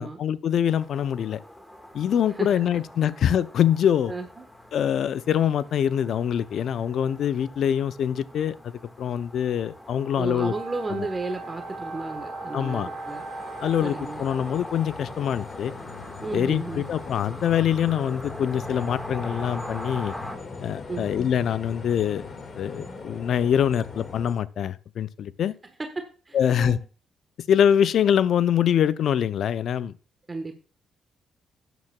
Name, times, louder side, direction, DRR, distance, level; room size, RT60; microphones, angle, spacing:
voice 1, 0.0-1.4 1.9-4.1 4.7-10.5 10.9-11.1 12.5-12.9 13.6-15.7 16.3-20.2 20.6-22.3 22.6-25.5 26.3-26.8 27.5-30.0, left 9 dB, 65° left, 0.5 m, -24 dB
sound 1, 0.7-20.4, left 1 dB, 10° left, 1.6 m, -42 dB
voice 2, 2.3-2.6 4.1-4.4 10.1-13.2 13.8-14.2 16.2-16.9 20.9-21.1 25.8-26.8 30.3-30.5, right 3 dB, 20° right, 1.2 m, -33 dB
Wind instrument woodwind instrument, 10.4-14.1, right 4 dB, 50° right, 2.3 m, -39 dB
sound 2, 12.8-24.3, left 5 dB, 45° left, 1.9 m, -40 dB
13.0 x 9.2 x 2.3 m
cardioid pair, 90°, 0 cm